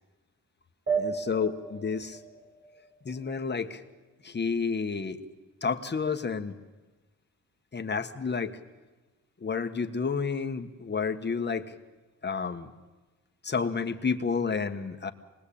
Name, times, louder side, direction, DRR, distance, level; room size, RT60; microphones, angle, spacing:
sound 1, 0.9-3.8, right 6 dB, 40° right, 4.3 m, -34 dB
voice 1, 1.0-2.2 3.0-3.8 4.2-5.2 5.6-6.6 7.7-8.6 9.4-11.7 12.2-12.7 13.4-15.1, left 5 dB, 30° left, 8 dB, 1.4 m, -30 dB
27.5 x 20.5 x 8.7 m, 1.2 s
wide cardioid pair, 130°, 33 cm